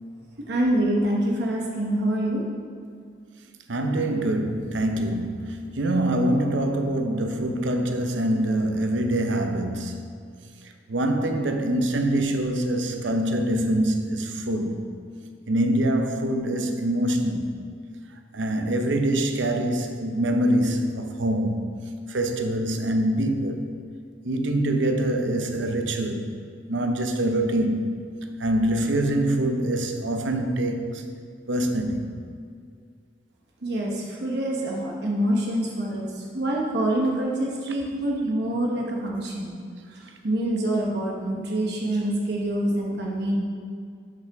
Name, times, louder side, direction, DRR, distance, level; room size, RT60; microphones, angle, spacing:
voice 1, 0.5-2.4 33.6-36.1 36.3-39.5 40.0-43.4, right 1 dB, 60° right, 1.0 m, -26 dB
voice 2, 3.7-10.1 10.9-14.8 15.5-17.6 18.3-21.7 22.1-23.7 24.2-26.3 26.7-27.9 28.4-30.9 31.5-32.1, right 1 dB, 85° right, 0.8 m, -24 dB
12.0 x 5.7 x 3.5 m
head